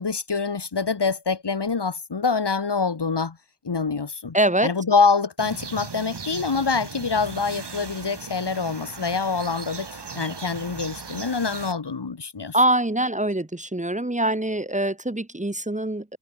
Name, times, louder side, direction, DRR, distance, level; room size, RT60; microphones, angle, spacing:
voice 1, 0.0-3.4 3.6-4.4 4.6-9.9 10.1-12.6, left 4 dB, 85° left, 2.8 m, -25 dB
voice 2, 4.3-4.7 12.5-16.2, right 1 dB, 20° right, 1.8 m, -23 dB
sound 1, 5.4-11.7, right 4 dB, 90° right, 3.8 m, -38 dB
wide cardioid pair, 60°, 40 cm